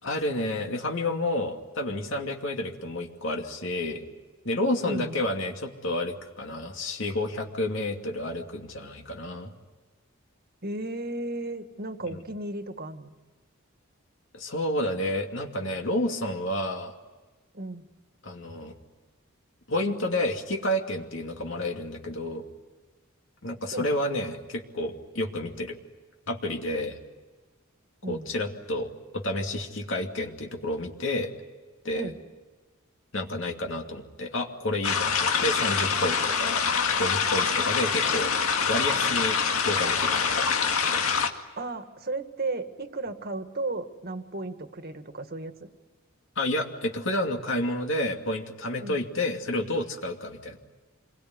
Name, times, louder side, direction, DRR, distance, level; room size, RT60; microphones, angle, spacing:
voice 1, 0.0-4.0 4.4-9.5 12.1-12.2 14.3-16.9 18.2-18.7 19.7-22.4 23.4-25.8 26.3-27.0 28.1-28.9 29.1-31.3 31.8-32.1 33.1-36.7 37.0-38.3 38.7-39.4 39.6-40.4 46.4-50.6, left 1 dB, 60° left, 2 dB, 2.6 m, -30 dB
voice 2, 4.8-5.2 10.6-13.1 17.5-17.8 23.7-23.9 28.0-28.3 31.9-32.2 41.6-45.5 48.8-49.0, right 2 dB, 45° right, 8 dB, 1.9 m, -34 dB
sound 1, 34.8-41.3, left 6 dB, 85° left, 2.1 m, -25 dB
28.0 x 22.0 x 9.6 m, 1.3 s
head